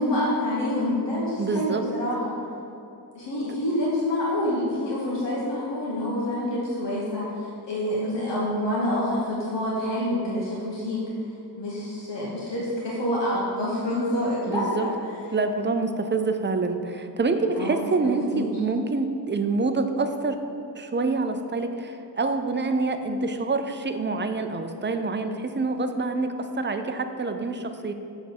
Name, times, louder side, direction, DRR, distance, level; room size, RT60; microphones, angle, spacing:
voice 1, 0.0-2.3 3.1-11.0 11.6-15.1 17.5-18.5, left 1 dB, 80° left, -6 dB, 1.3 m, -27 dB
voice 2, 1.4-1.9 14.5-14.9 15.3-20.4 20.7-27.9, right 3 dB, 25° right, 7 dB, 0.5 m, -26 dB
7.5 x 3.5 x 6.0 m, 2.7 s
wide cardioid pair, 85°, 42 cm